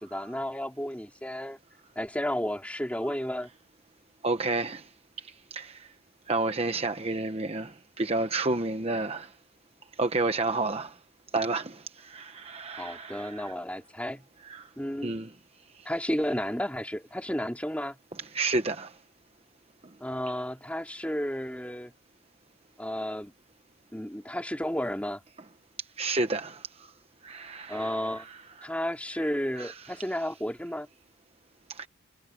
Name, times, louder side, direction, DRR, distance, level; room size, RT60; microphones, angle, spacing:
voice 1, 0.0-1.6 1.9-3.5 12.8-14.2 14.8-15.2 15.8-18.0 20.0-21.9 22.8-23.3 23.9-25.2 27.7-28.3 28.6-30.9, equal, 5° left, 2.9 m, -32 dB
voice 2, 4.2-4.9 5.2-5.9 6.3-9.3 10.0-11.0 11.3-13.5 14.4-14.7 15.0-15.3 15.7-15.9 18.3-19.0 19.8-19.9 26.0-26.9 27.2-28.7 29.6-30.0 31.7-31.9, right 3 dB, 30° right, 1.0 m, -31 dB
head